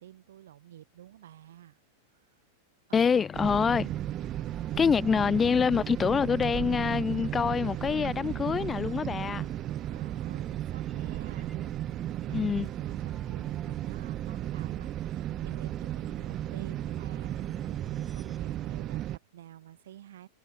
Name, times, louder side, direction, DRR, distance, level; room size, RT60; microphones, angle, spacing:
voice 1, 0.0-1.8 2.2-2.4 2.9-3.4 9.9-11.8 12.3-20.3, right 12 dB, 60° right, 4.4 m, -50 dB
voice 2, 2.9-3.9 4.8-9.5 12.3-12.7, left 6 dB, 20° left, 1.2 m, -26 dB
sound 1, 3.3-19.2, right 13 dB, 35° right, 0.4 m, -35 dB
sound 2, 3.5-18.4, equal, ahead, 5.5 m, -50 dB
figure-of-eight pair, 90°, 0 cm